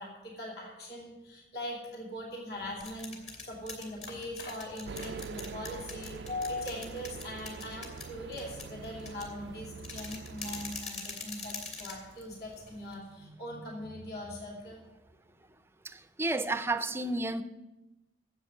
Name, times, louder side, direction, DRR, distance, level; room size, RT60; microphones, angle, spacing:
voice 1, 0.0-14.8, left 1 dB, 60° left, -2 dB, 2.9 m, -41 dB
sound 1, 2.6-12.9, left 4 dB, 40° left, 2.2 m, -44 dB
sound 2, 3.9-8.9, left 2 dB, 75° left, 2.9 m, -55 dB
sound 3, 4.8-10.8, right 6 dB, 75° right, 0.3 m, -44 dB
voice 2, 15.8-17.4, right 2 dB, 15° right, 12 dB, 0.5 m, -31 dB
9.7 x 7.9 x 8.8 m, 1.0 s
head